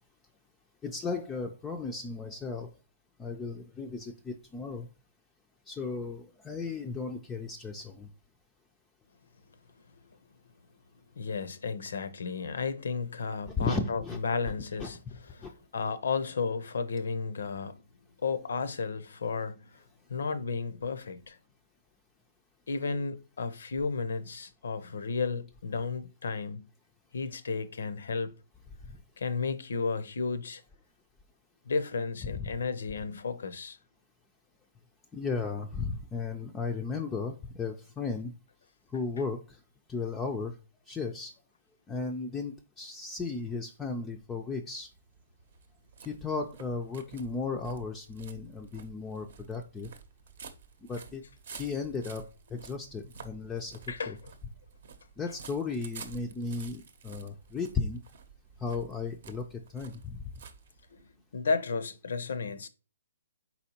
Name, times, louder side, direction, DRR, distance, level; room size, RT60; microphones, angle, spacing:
voice 1, 0.8-2.7 3.2-4.9 5.7-8.1 13.6-14.2 14.8-14.9 15.4-15.5 32.2-32.5 35.1-38.3 38.9-39.4 39.9-40.5 40.9-41.3 41.9-44.9 46.1-49.9 50.9-51.2 51.5-52.2 52.5-53.8 54.1-54.2 55.2-58.0 58.6-60.2, left 4 dB, 10° left, 0.4 m, -35 dB
voice 2, 11.2-15.0 15.3-17.8 18.2-19.8 20.1-21.4 22.7-26.7 27.1-28.3 29.2-30.6 31.7-33.8 53.9-54.1 60.9-61.0 61.3-62.7, left 4 dB, 75° left, 0.6 m, -33 dB
sound 1, 44.6-61.2, right 6 dB, 60° right, 0.7 m, -51 dB
4.3 x 4.1 x 2.8 m
hypercardioid pair, 150°, 0 cm